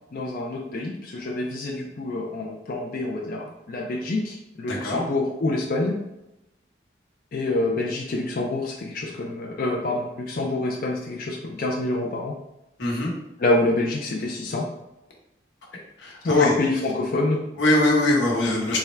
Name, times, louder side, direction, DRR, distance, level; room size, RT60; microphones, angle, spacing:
voice 1, 0.1-6.0 7.3-12.4 13.4-14.6 16.2-17.4, left 2 dB, 50° left, -1 dB, 0.4 m, -26 dB
voice 2, 4.7-5.0 12.8-13.1 16.0-16.5 17.6-18.8, left 1 dB, 90° left, -2 dB, 1.0 m, -22 dB
3.5 x 2.1 x 4.3 m, 0.90 s
head